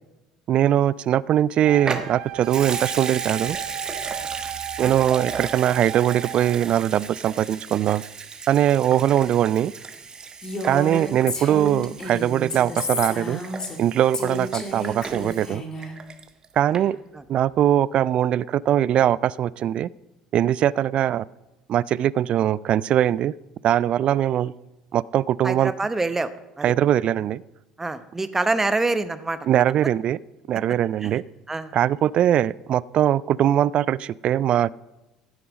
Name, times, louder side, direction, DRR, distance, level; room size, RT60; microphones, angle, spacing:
voice 1, 0.5-3.6 4.8-8.0 8.5-9.7 10.6-13.4 13.8-15.6 16.6-17.0 17.3-19.9 20.3-21.3 21.7-23.3 23.6-24.5 24.9-25.7 26.6-27.4 29.5-30.2 30.5-31.2 31.7-34.7, right 11 dB, 50° right, 23 dB, 0.3 m, -21 dB
Wind instrument woodwind instrument, 1.6-6.7, right 11 dB, 65° right, 1.5 m, -35 dB
Water tap faucet / Sink (filling or washing) / Liquid, 1.8-16.4 16.7-16.8, right 5 dB, 30° right, 1.2 m, -36 dB
Female speech woman speaking, 10.4-13.8 14.1-15.9, left 1 dB, 30° left, 2.2 m, -31 dB
voice 2, 25.4-26.3 26.6-26.7 27.8-29.4 31.0-31.2 31.5-31.7, right 3 dB, 15° right, 12 dB, 0.9 m, -26 dB
15.5 x 7.7 x 5.2 m, 1.0 s
hypercardioid pair, 60°, 2 cm